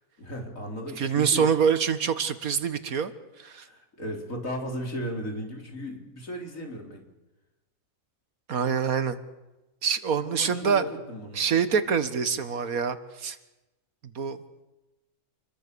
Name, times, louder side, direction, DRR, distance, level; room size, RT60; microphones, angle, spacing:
voice 1, 0.2-1.5 3.6-7.0 10.2-11.4, equal, 70° left, 2 dB, 4.6 m, -36 dB
voice 2, 1.0-3.1 3.4-3.7 8.5-9.2 9.8-10.8 11.4-13.4 14.2-14.4, right 6 dB, 90° right, 12 dB, 1.9 m, -25 dB
28.5 x 22.5 x 7.0 m, 1.0 s
omnidirectional pair, 1.5 m